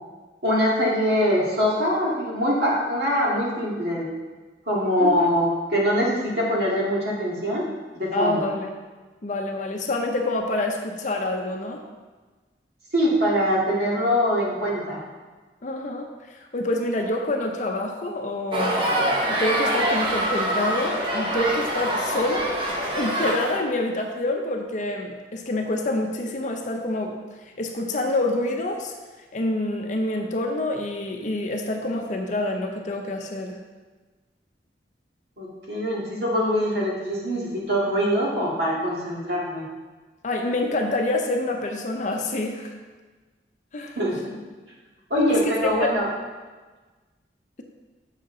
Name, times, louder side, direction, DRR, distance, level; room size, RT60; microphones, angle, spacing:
voice 1, 0.4-4.1 4.7-7.7 8.0-8.5 12.9-15.0 35.4-39.7 44.0-44.2 45.1-46.1, equal, 65° right, -5 dB, 1.9 m, -23 dB
voice 2, 5.0-5.3 8.1-8.7 9.2-11.8 15.6-18.8 19.3-22.6 22.9-27.2 27.4-28.9 29.3-33.6 40.2-42.7 43.7-44.0 45.3-45.4 45.8-45.9, left 2 dB, 45° left, 3 dB, 0.6 m, -27 dB
sound 1, 18.5-23.6, right 1 dB, 30° right, 0.9 m, -25 dB
7.1 x 5.7 x 3.7 m, 1.3 s
head